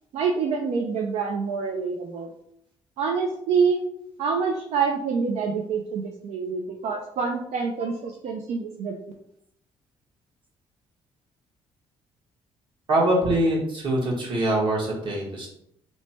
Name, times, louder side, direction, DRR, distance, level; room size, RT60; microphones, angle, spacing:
voice 1, 0.1-2.3 3.0-3.8 4.2-8.9, right 5 dB, 75° right, 2 dB, 0.4 m, -26 dB
voice 2, 12.9-15.5, right 1 dB, 45° right, -3 dB, 1.3 m, -23 dB
3.1 x 2.1 x 4.1 m, 0.73 s
cardioid pair, 115°, 11 cm